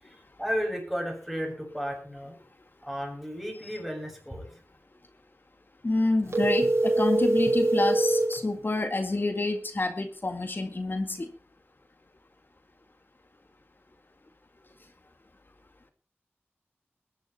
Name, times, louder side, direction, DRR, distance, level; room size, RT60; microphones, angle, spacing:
voice 1, 0.0-2.4 2.8-4.6, equal, 5° right, 0 dB, 7.3 m, -34 dB
voice 2, 5.8-11.3, left 2 dB, 50° left, 7 dB, 1.9 m, -28 dB
sound 1, 6.3-8.4, right 2 dB, 90° right, 5.3 m, -23 dB
21.0 x 10.5 x 4.4 m, 0.41 s
wide cardioid pair, 70°, 5 cm